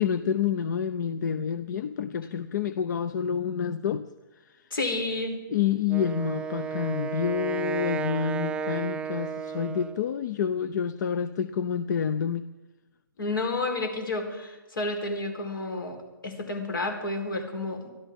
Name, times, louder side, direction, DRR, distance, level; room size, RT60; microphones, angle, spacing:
voice 1, 0.0-4.1 5.5-12.4, left 7 dB, 55° left, 14 dB, 0.7 m, -28 dB
voice 2, 4.7-5.4 13.2-16.0 16.2-17.9, left 2 dB, 80° left, 4 dB, 4.2 m, -30 dB
Wind instrument woodwind instrument, 5.9-10.1, right 6 dB, 10° right, 0.5 m, -33 dB
24.0 x 14.0 x 3.7 m, 1.2 s
hypercardioid pair, 135°, 11 cm